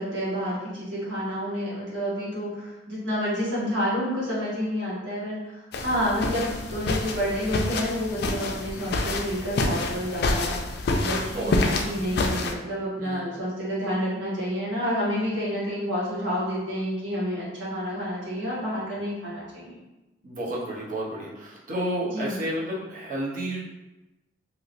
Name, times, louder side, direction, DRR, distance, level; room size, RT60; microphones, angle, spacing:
voice 1, 0.0-19.7 22.1-22.3, equal, 90° right, -8 dB, 1.5 m, -29 dB
sound 1, 5.7-12.5, left 2 dB, 60° left, 0.4 m, -28 dB
voice 2, 11.2-11.8 13.0-13.4 20.2-23.6, right 1 dB, 45° right, -5 dB, 0.8 m, -31 dB
3.1 x 2.9 x 2.5 m, 1.0 s
head